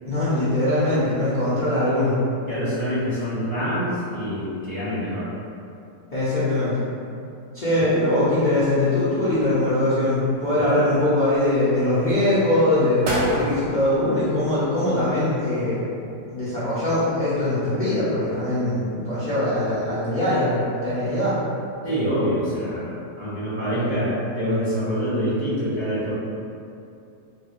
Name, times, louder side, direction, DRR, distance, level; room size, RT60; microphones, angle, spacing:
voice 1, 0.0-2.2 6.1-6.8 7.5-15.8 16.3-21.4, left 1 dB, 70° left, -12 dB, 0.4 m, -22 dB
voice 2, 2.5-5.3 7.8-7.9 10.6-11.1 21.8-26.1, equal, 25° right, -13 dB, 0.6 m, -26 dB
sound 1, 9.3-10.1 10.5-11.4 11.9-12.3 12.7-12.8 13.0-15.0 15.3-15.4, equal, 85° right, 1.2 m, -31 dB
3.2 x 2.4 x 3.0 m, 2.6 s
omnidirectional pair, 1.8 m